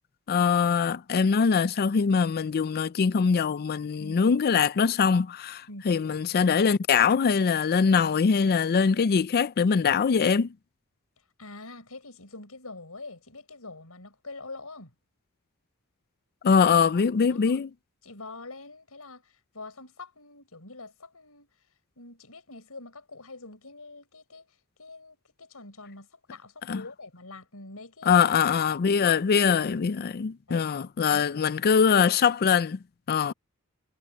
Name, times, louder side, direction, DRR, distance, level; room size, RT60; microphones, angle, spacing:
voice 1, 0.3-10.5 16.4-17.7 26.7-26.8 28.1-32.8 33.1-33.3, left 6 dB, 45° left, 0.4 m, -23 dB
voice 2, 11.4-14.9 17.3-17.6 18.0-21.5 22.0-28.3 28.8-29.2 30.5-30.7 31.1-31.4, left 3 dB, 75° left, 6.1 m, -45 dB
head